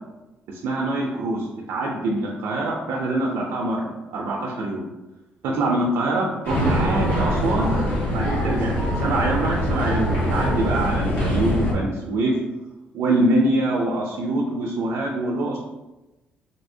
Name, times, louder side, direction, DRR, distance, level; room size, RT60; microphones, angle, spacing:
voice 1, 0.5-4.9 5.4-7.7 8.1-12.4 12.9-15.6, right 2 dB, 85° right, -1 dB, 0.4 m, -24 dB
sound 1, 6.4-11.7, equal, 50° left, 1.4 m, -23 dB
3.4 x 2.7 x 2.6 m, 1.0 s
cardioid pair, 90°, 4 cm